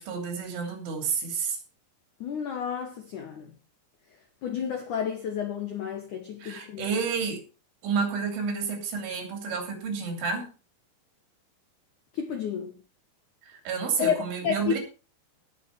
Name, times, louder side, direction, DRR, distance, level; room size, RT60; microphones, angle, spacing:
voice 1, 0.0-1.6 6.4-7.4 7.8-10.5 13.4-14.8, right 5 dB, 70° right, 5.3 m, -30 dB
voice 2, 2.2-3.5 4.4-6.9 12.1-12.7 14.0-14.8, left 7 dB, 85° left, 1.7 m, -31 dB
18.5 x 6.7 x 4.7 m
omnidirectional pair, 5.8 m